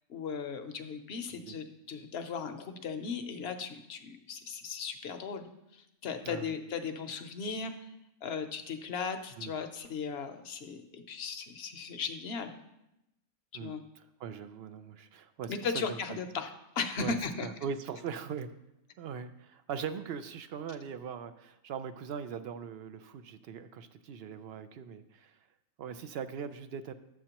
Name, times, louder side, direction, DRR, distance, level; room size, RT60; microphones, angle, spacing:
voice 1, 0.1-7.7 8.2-12.5 13.6-13.8 15.5-17.5, left 5 dB, 60° left, 7 dB, 0.9 m, -37 dB
voice 2, 13.5-16.2 17.0-18.5 19.0-25.4 25.8-26.9, right 7 dB, 65° right, 11 dB, 0.7 m, -41 dB
11.0 x 7.5 x 2.9 m, 0.86 s
omnidirectional pair, 1.4 m